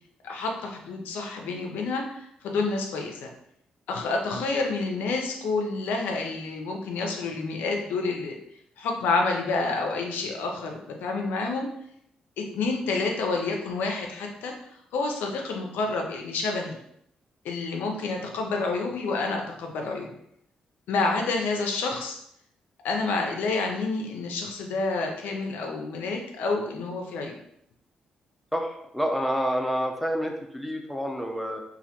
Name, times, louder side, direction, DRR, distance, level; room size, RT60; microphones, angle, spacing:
voice 1, 0.2-3.3 3.9-8.4 8.8-11.7 12.4-14.5 14.9-16.8 17.4-20.1 20.9-22.2 22.8-27.4, left 3 dB, 70° left, 2 dB, 0.4 m, -29 dB
voice 2, 28.5-31.6, equal, ahead, 2 dB, 0.5 m, -28 dB
2.1 x 2.1 x 2.8 m, 0.73 s
hypercardioid pair, 40°, 3 cm